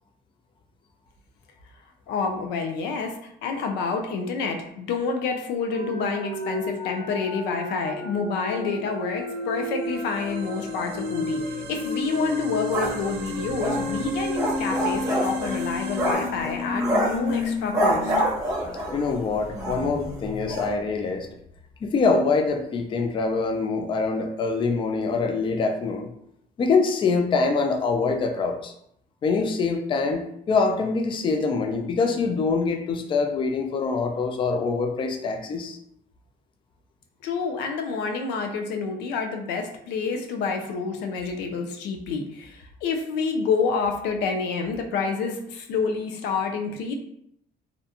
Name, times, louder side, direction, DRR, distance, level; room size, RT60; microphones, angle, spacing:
voice 1, 2.1-11.4 11.7-18.1 37.2-46.9, left 4 dB, 90° left, 4 dB, 0.4 m, -28 dB
sound 1, 5.7-18.2 18.5-18.6 19.0-21.7, left 3 dB, 50° left, 0.8 m, -32 dB
sound 2, 9.1-16.1, right 6 dB, 90° right, 0.4 m, -39 dB
sound 3, 12.7-19.2 19.6-19.8 20.1-20.2 20.5-20.7, right 1 dB, 20° right, 0.8 m, -27 dB
voice 2, 18.9-21.3 21.8-26.1 26.6-28.7 29.2-35.8, left 4 dB, 30° left, 5 dB, 0.3 m, -24 dB
2.5 x 2.1 x 2.7 m, 0.72 s
cardioid pair, 110°, 17 cm